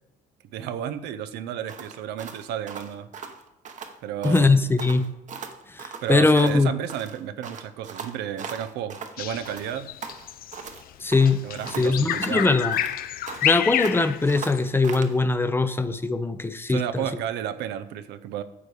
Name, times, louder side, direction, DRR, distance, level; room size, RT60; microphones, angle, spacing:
voice 1, 0.4-3.1 4.0-4.6 6.0-9.9 11.4-12.6 16.7-18.4, right 10 dB, 85° right, 11 dB, 0.7 m, -32 dB
sound 1, 1.7-4.0 4.2-4.5 4.8-6.6 6.9-9.2 9.4-10.8 11.1-13.6 13.8-15.2, right 6 dB, 45° right, 1.0 m, -39 dB
voice 2, 4.2-5.1 5.7-6.7 11.0-11.5 11.8-12.8 13.4-17.0, left 3 dB, 15° left, 11 dB, 0.6 m, -21 dB
Bird vocalization bird call bird song, 9.2-14.7, left 12 dB, 60° left, 0.5 m, -29 dB
9.6 x 6.8 x 4.9 m, 0.95 s
cardioid pair, 110°, 17 cm